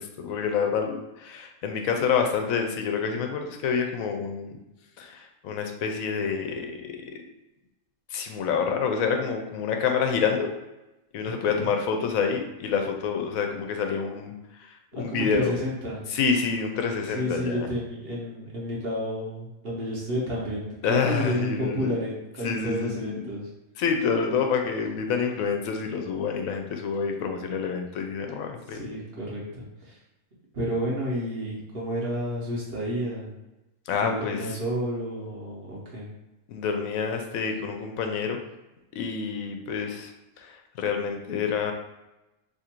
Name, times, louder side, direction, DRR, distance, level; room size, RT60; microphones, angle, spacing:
voice 1, 0.0-4.6 5.0-7.2 8.1-10.5 11.1-15.5 16.1-17.7 20.8-22.0 22.4-23.2 23.8-28.8 33.9-34.4 36.5-38.4 38.9-40.1 40.4-41.7, left 6 dB, 80° left, 4 dB, 1.0 m, -28 dB
voice 2, 11.2-11.8 14.9-16.0 17.1-23.5 28.7-30.0 30.5-33.3 34.0-36.1, equal, 50° right, -4 dB, 1.1 m, -31 dB
3.0 x 2.5 x 4.3 m, 0.98 s
omnidirectional pair, 1.4 m